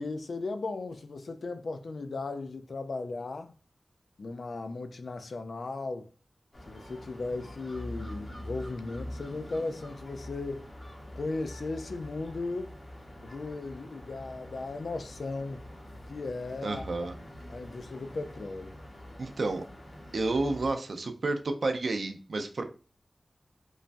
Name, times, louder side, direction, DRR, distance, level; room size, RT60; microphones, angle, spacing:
voice 1, 0.0-3.5 4.2-6.1 6.7-10.7 11.2-12.8 13.2-15.6 16.1-17.1 17.5-18.8, left 3 dB, 75° left, 0.3 m, -36 dB
sound 1, 6.5-20.7, left 1 dB, 45° left, 0.9 m, -45 dB
voice 2, 16.6-17.1 19.2-19.6 20.1-22.6, right 2 dB, 75° right, 0.4 m, -30 dB
3.1 x 2.2 x 2.5 m
cardioid pair, 50°, 0 cm